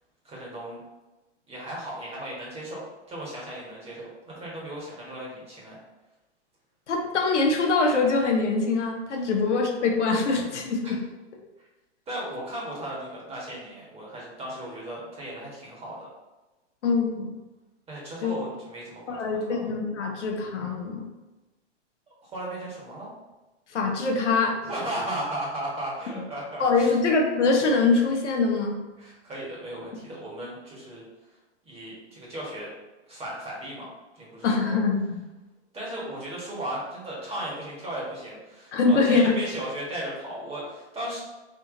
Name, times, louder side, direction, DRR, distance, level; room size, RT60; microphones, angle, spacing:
voice 1, 0.2-0.8 1.5-2.8 3.1-5.8 10.8-10.9 12.1-16.1 17.9-19.7 22.2-23.1 24.6-26.9 29.0-31.0 31.6-32.7 33.1-33.9 34.1-34.8 35.7-41.2, right 1 dB, 15° right, -5 dB, 1.3 m, -36 dB
voice 2, 6.9-11.0 16.8-17.3 18.2-18.4 19.1-21.1 23.7-24.6 26.6-28.7 34.4-35.2 38.7-39.3, left 4 dB, 85° left, 2 dB, 0.8 m, -23 dB
3.4 x 2.8 x 3.8 m, 1.1 s
hypercardioid pair, 125°, 34 cm